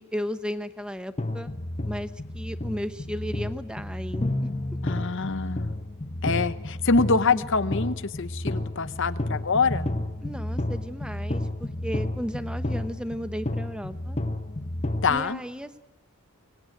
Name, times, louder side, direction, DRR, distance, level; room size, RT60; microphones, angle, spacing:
voice 1, 0.0-1.5 1.8-4.5 7.1-7.5 10.2-14.2 15.1-15.8, equal, 5° right, 11 dB, 0.9 m, -35 dB
sound 1, 1.2-15.2, left 1 dB, 30° left, 0.9 m, -31 dB
voice 2, 4.8-5.8 6.2-9.9 15.0-15.4, left 4 dB, 55° left, 15 dB, 0.8 m, -25 dB
23.5 x 18.5 x 9.1 m, 1.1 s
head